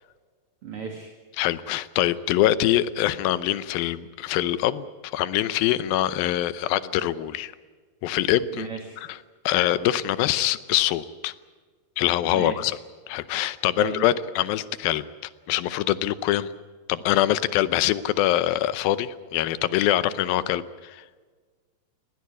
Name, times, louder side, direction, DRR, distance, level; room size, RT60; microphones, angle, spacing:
voice 1, 0.6-1.1 8.5-9.0 12.2-12.6 13.8-14.0 20.1-20.2, right 6 dB, 45° right, 3 dB, 2.4 m, -35 dB
voice 2, 1.4-7.5 8.0-8.7 9.5-11.3 12.0-12.8 13.1-16.5 16.9-21.1, left 13 dB, 85° left, 15 dB, 2.6 m, -24 dB
20.0 x 18.0 x 9.7 m, 1.5 s
omnidirectional pair, 4.1 m